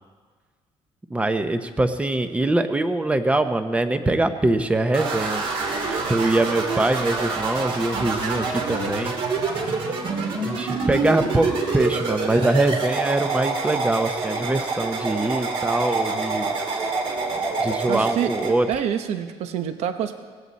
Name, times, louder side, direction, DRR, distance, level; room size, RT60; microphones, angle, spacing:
voice 1, 1.1-5.4 6.1-9.2 10.4-16.5 17.6-18.7, right 2 dB, 10° right, 9 dB, 0.8 m, -23 dB
sound 1, 4.9-18.5, right 3 dB, 55° right, 2.9 m, -26 dB
voice 2, 17.9-18.3 18.7-20.2, right 9 dB, 70° right, 8 dB, 1.0 m, -26 dB
18.5 x 16.0 x 4.2 m, 1.5 s
cardioid pair, 150°, 11 cm